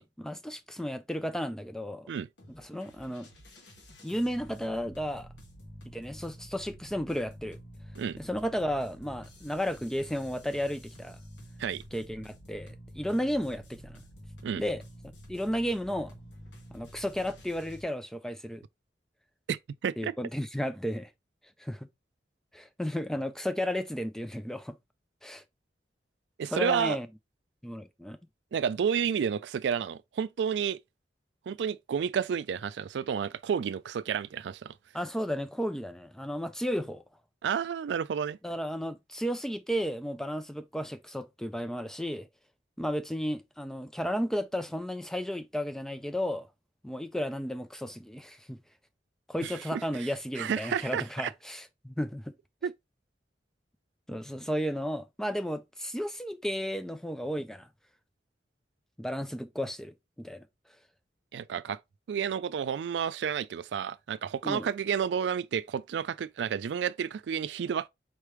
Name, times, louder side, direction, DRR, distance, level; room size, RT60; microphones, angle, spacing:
voice 1, 0.2-2.1 2.5-3.3 4.0-5.3 5.9-7.6 8.2-11.2 11.9-14.0 14.6-14.8 15.3-16.1 16.7-18.6 20.0-21.1 21.6-21.9 22.5-24.8 25.2-25.4 26.4-27.1 27.6-28.2 34.9-37.0 38.4-42.3 42.8-46.5 46.8-48.6 49.3-52.3 54.1-57.7 59.0-60.5 64.4-64.7, equal, 5° left, 0.4 m, -33 dB
sound 1, 2.4-17.8, equal, 90° left, 1.5 m, -49 dB
voice 2, 19.5-20.1 26.4-27.0 28.5-30.8 31.5-34.7 37.4-38.4 49.4-49.8 50.4-51.3 52.6-52.7 61.3-61.8 62.1-67.9, right 7 dB, 80° right, 0.3 m, -31 dB
4.5 x 3.3 x 3.0 m
head